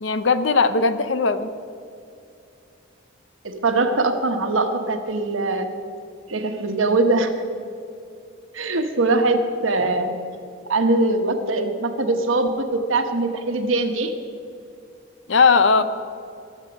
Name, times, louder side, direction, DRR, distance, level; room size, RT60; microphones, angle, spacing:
voice 1, 0.0-1.5 15.3-15.8, left 4 dB, 70° left, 12 dB, 0.7 m, -18 dB
voice 2, 3.4-5.7 6.3-7.4 8.5-10.2 10.7-14.1, right 2 dB, 90° right, 6 dB, 1.2 m, -22 dB
21.0 x 7.4 x 5.3 m, 2.5 s
head